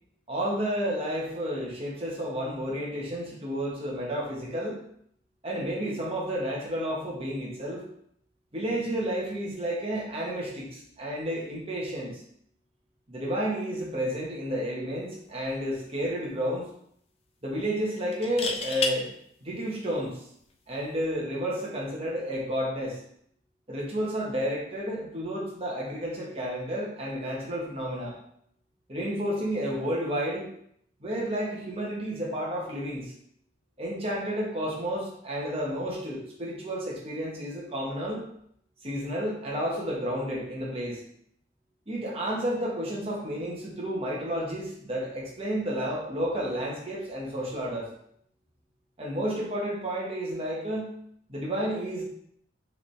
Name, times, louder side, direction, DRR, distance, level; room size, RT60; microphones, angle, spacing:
voice 1, 0.3-4.8 5.4-7.8 8.5-12.2 13.1-16.6 17.4-19.1 19.4-20.2 20.7-23.0 23.7-28.2 28.9-30.5 31.0-33.1 33.8-38.2 38.8-41.0 41.9-47.9 49.0-50.9 51.3-52.0, equal, 30° right, -4 dB, 1.1 m, -31 dB
sound 1, 15.3-15.5 15.9-16.0 18.1-19.0 20.8-21.0, left 4 dB, 30° left, 0.4 m, -30 dB
4.9 x 3.4 x 3.2 m, 0.70 s
head